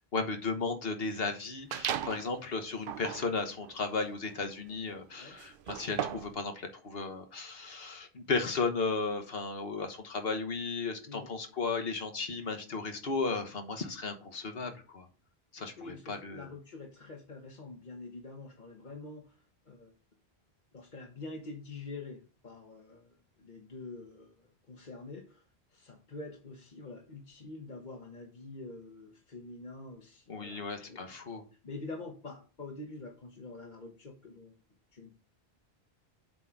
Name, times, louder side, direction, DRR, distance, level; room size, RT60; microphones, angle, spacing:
voice 1, 0.1-15.1 15.5-16.5 30.3-31.4, left 4 dB, 65° left, 6 dB, 1.4 m, -35 dB
sound 1, 1.7-2.3 2.8-6.4, right 9 dB, 65° right, 0.7 m, -38 dB
voice 2, 11.1-11.5 15.8-19.9 20.7-25.4 25.7-34.6 34.9-35.2, left 3 dB, 50° left, 2 dB, 1.1 m, -46 dB
7.7 x 3.7 x 5.9 m, 0.35 s
omnidirectional pair, 1.1 m